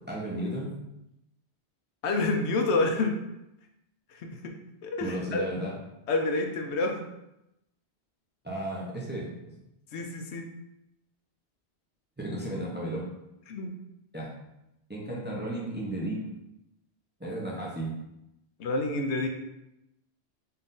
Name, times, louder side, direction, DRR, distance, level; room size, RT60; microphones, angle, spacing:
voice 1, 0.1-0.7 5.0-5.7 8.4-9.3 12.2-13.1 14.1-14.3 14.9-16.2 17.2-17.9, right 1 dB, 10° right, -4 dB, 0.6 m, -34 dB
voice 2, 2.0-3.2 4.1-4.5 4.8-5.4 6.1-7.0 9.9-10.5 13.5-13.7 18.6-19.3, left 2 dB, 85° left, 4 dB, 0.9 m, -28 dB
4.1 x 2.6 x 3.8 m, 0.87 s
omnidirectional pair, 1.1 m